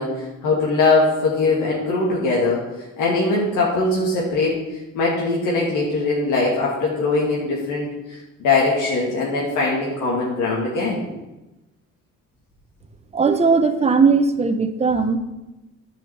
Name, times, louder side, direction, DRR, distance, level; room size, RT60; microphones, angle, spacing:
voice 1, 0.0-2.6 3.0-4.6 4.9-11.1, left 3 dB, 85° left, -4 dB, 2.3 m, -21 dB
voice 2, 13.1-15.2, right 4 dB, 20° right, 7 dB, 0.9 m, -18 dB
9.9 x 5.7 x 7.2 m, 1.0 s
cardioid pair, 90°, 30 cm